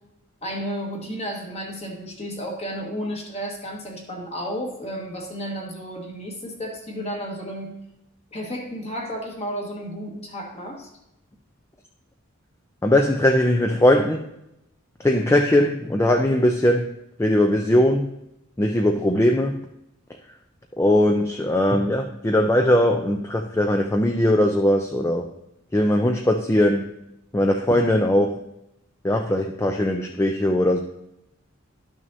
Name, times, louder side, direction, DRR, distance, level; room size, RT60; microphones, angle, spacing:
voice 1, 0.4-7.8 8.3-10.9, equal, 30° left, 0 dB, 1.6 m, -32 dB
voice 2, 12.8-14.2 15.0-16.9 17.2-18.1 18.6-19.6 20.8-25.3 25.7-26.9 27.3-28.4 29.0-30.8, left 1 dB, 15° left, 4 dB, 0.4 m, -20 dB
12.0 x 6.3 x 2.7 m, 0.87 s
head